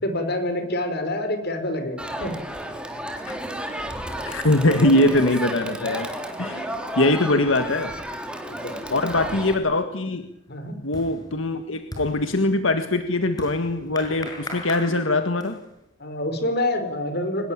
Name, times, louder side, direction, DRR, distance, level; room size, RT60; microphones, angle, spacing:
voice 1, 0.0-2.3 6.4-6.7 8.5-9.0 10.5-10.8 16.0-17.5, left 1 dB, 55° left, 8 dB, 5.2 m, -27 dB
Crowd, 2.0-9.5, right 1 dB, 5° right, 3.5 m, -32 dB
voice 2, 4.3-6.1 6.4-6.6 7.0-7.9 8.9-10.3 10.8-15.6, left 2 dB, 85° left, 8 dB, 1.8 m, -22 dB
sound 1, 10.0-15.8, left 1 dB, 20° left, 6.7 m, -40 dB
24.0 x 21.0 x 8.9 m, 0.83 s
head